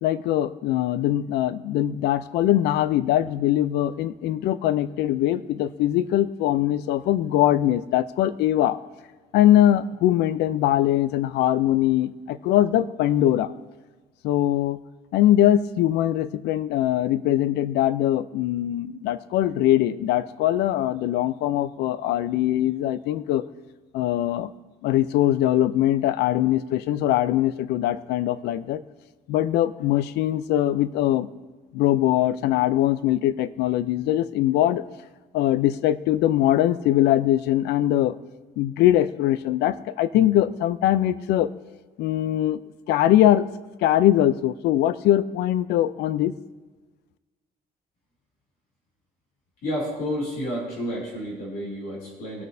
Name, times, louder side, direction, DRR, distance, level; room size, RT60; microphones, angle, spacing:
voice 1, 0.0-8.8 9.3-13.5 14.2-14.8 15.1-23.4 23.9-24.5 24.8-28.8 29.3-31.3 31.7-34.8 35.3-38.2 38.6-41.5 42.0-42.6 42.9-43.5 43.8-46.3, left 12 dB, 80° left, 16 dB, 0.5 m, -22 dB
voice 2, 49.6-52.4, equal, 60° left, -3 dB, 3.2 m, -30 dB
19.5 x 6.5 x 2.7 m, 1.3 s
cardioid pair, 110°, 17 cm